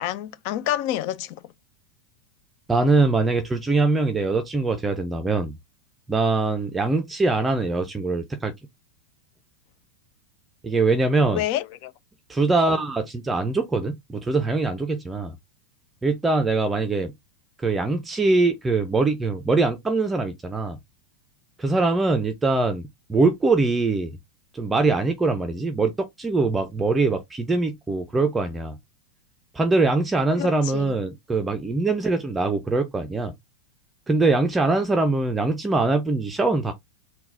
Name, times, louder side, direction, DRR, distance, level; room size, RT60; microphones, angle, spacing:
voice 1, 0.0-1.4 11.3-11.9 30.4-31.0, left 12 dB, 45° left, 0.5 m, -28 dB
voice 2, 2.7-5.6 6.1-8.5 10.6-11.4 12.3-15.4 16.0-17.1 17.6-20.8 21.6-22.8 23.1-24.1 24.5-28.8 29.5-33.3 34.1-36.7, right 3 dB, 10° right, 0.5 m, -22 dB
3.9 x 2.3 x 3.6 m
figure-of-eight pair, 90°, 0 cm